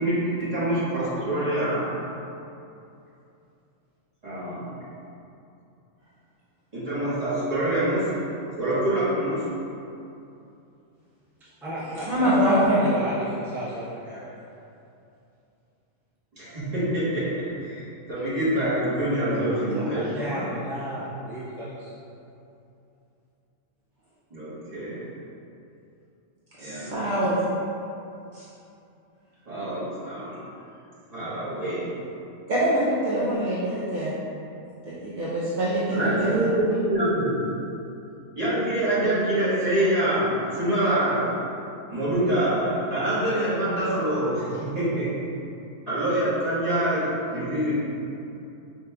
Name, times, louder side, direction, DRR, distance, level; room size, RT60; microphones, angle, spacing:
voice 1, 0.0-1.9 4.2-4.7 6.7-8.1 8.6-9.4 16.3-20.4 24.3-25.0 26.6-26.9 29.5-30.4 31.1-31.9 35.9-37.4 38.3-41.3 41.9-45.1 45.9-47.7, right 1 dB, 30° right, -12 dB, 1.3 m, -25 dB
voice 2, 11.4-14.3 19.3-21.9, equal, ahead, -11 dB, 0.5 m, -35 dB
voice 3, 12.1-12.8 26.6-27.4 28.3-28.5 32.5-34.1 34.8-36.5, right 1 dB, 60° right, -9 dB, 0.5 m, -24 dB
4.9 x 3.0 x 2.3 m, 2.7 s
omnidirectional pair, 1.4 m